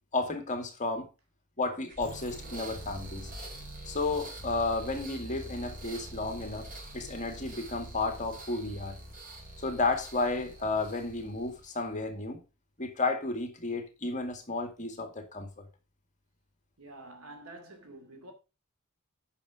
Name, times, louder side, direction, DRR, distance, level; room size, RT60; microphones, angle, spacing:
voice 1, 0.1-1.1 1.6-3.3 3.9-6.7 6.9-8.9 9.6-12.4 12.8-15.6, left 3 dB, 35° left, 1.9 m, -32 dB
sound 1, 1.9-11.9, right 1 dB, 40° right, 4.1 m, -44 dB
voice 2, 16.8-18.3, right 2 dB, 70° right, 2.6 m, -48 dB
8.9 x 6.0 x 4.9 m
head